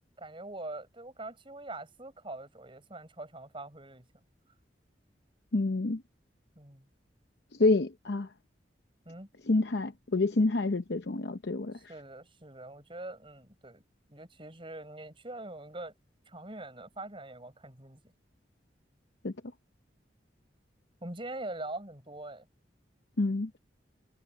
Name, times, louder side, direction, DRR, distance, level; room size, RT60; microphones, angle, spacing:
voice 1, 0.2-4.1 6.6-6.9 9.1-9.3 11.7-13.8 14.1-15.9 16.3-18.1 21.0-22.5, right 2 dB, 30° right, 5.8 m, -43 dB
voice 2, 5.5-6.0 7.6-8.3 9.5-11.8 19.2-19.3 23.2-23.6, left 2 dB, 65° left, 0.8 m, -28 dB
head